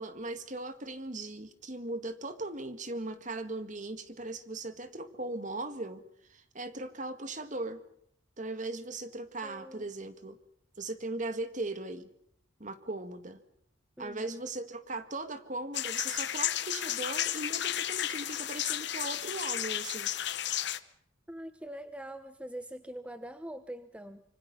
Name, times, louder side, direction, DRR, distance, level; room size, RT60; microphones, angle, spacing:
voice 1, 0.0-6.0 6.3-7.8 8.4-10.4 10.8-12.1 12.6-13.4 14.0-20.1, right 2 dB, 40° right, 9 dB, 1.9 m, -38 dB
voice 2, 9.4-9.9 14.0-14.4 21.3-24.2, right 1 dB, 5° right, 10 dB, 0.9 m, -43 dB
sound 1, 15.7-20.8, left 11 dB, 60° left, 1.1 m, -33 dB
26.0 x 25.0 x 5.6 m, 0.69 s
head